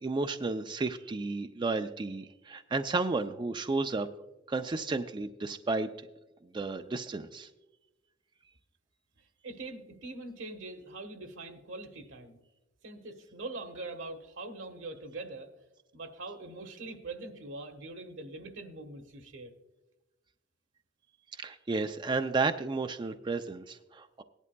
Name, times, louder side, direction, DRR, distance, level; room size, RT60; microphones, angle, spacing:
voice 1, 0.0-4.1 4.5-5.9 6.5-7.5 21.4-24.2, right 3 dB, 25° right, 7 dB, 0.4 m, -32 dB
voice 2, 9.4-12.4 12.8-15.5 15.9-19.5, right 2 dB, 80° right, 5 dB, 1.3 m, -43 dB
18.0 x 11.0 x 2.2 m, 1.0 s
head